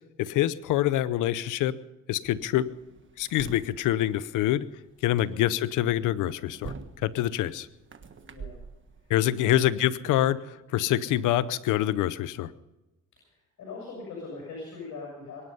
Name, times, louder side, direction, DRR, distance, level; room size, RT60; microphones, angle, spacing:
voice 1, 0.2-1.8 2.1-2.7 3.2-4.7 5.0-6.7 7.0-7.7 9.1-12.5, left 13 dB, 90° left, 17 dB, 0.8 m, -25 dB
sound 1, 2.2-9.6, right 5 dB, 40° right, 1.5 m, -47 dB
voice 2, 8.2-8.6 9.5-9.7 13.6-15.5, left 3 dB, 70° left, -2 dB, 7.1 m, -40 dB
23.0 x 11.5 x 5.6 m, 1.0 s
cardioid pair, 90°, 30 cm